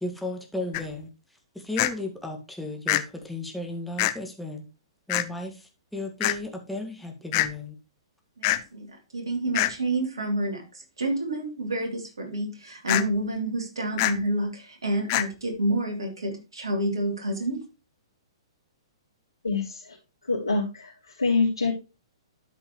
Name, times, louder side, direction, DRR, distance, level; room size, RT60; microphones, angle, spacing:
voice 1, 0.0-1.1 1.5-4.7 5.1-7.7, left 1 dB, ahead, 1 dB, 1.9 m, -34 dB
sound 1, 0.7-0.8 1.8-1.9 2.9-3.0 4.0-4.1 5.1-5.2 6.2-6.4 7.3-7.5 8.4-8.6 9.5-9.7 12.9-13.0 14.0-14.1 15.1-15.3, left 16 dB, 35° left, 0.7 m, -23 dB
voice 2, 8.4-17.6, right 1 dB, 65° right, 2 dB, 3.3 m, -29 dB
voice 3, 19.4-20.0 20.3-21.7, left 4 dB, 75° left, -7 dB, 3.6 m, -26 dB
12.5 x 5.4 x 3.2 m, 0.28 s
figure-of-eight pair, 115°, 3 cm